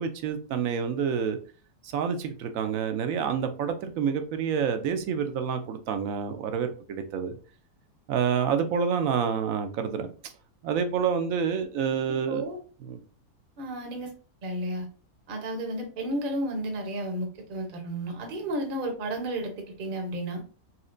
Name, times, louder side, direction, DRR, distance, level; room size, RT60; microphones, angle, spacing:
voice 1, 0.0-1.4 1.8-7.3 8.1-10.1 10.6-12.4 12.8-13.0, right 7 dB, 70° right, 0.9 m, -28 dB
voice 2, 12.3-12.6 13.6-14.1 14.4-14.9 15.3-20.4, right 1 dB, 40° right, 0.8 m, -32 dB
4.3 x 2.8 x 2.5 m
omnidirectional pair, 1.6 m